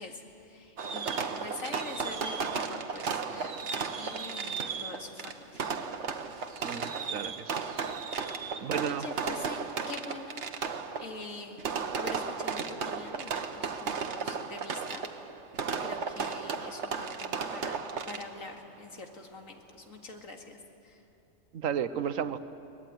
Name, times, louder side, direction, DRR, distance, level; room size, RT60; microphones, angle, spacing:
voice 1, 0.0-5.7 8.4-10.5 11.0-11.6 11.9-15.0 15.8-21.0, left 3 dB, 85° left, 3 dB, 2.4 m, -45 dB
Fireworks, 0.8-18.5, right 5 dB, 60° right, 1.4 m, -35 dB
voice 2, 6.6-7.6 8.6-9.1 21.5-22.4, right 8 dB, 85° right, 12 dB, 1.3 m, -33 dB
23.5 x 19.5 x 9.5 m, 2.8 s
omnidirectional pair, 1.3 m